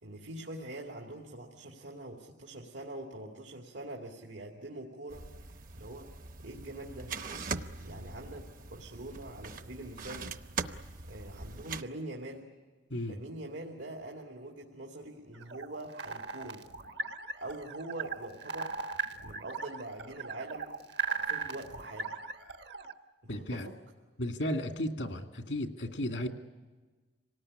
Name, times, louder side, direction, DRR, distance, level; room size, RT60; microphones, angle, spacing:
voice 1, 0.0-5.3 5.7-6.1 6.4-7.2 7.8-10.3 11.1-12.5 13.1-16.7 17.3-18.7 19.2-20.7 21.2-22.2 23.2-23.8, right 1 dB, 85° right, 0 dB, 2.5 m, -44 dB
sound 1, 5.1-11.8, right 4 dB, 50° right, 0.8 m, -41 dB
sound 2, 15.3-22.9, right 4 dB, 70° right, 1.3 m, -38 dB
voice 2, 23.3-23.7 24.2-26.3, left 1 dB, 90° left, 5 dB, 2.2 m, -34 dB
26.5 x 18.5 x 10.0 m, 1.3 s
head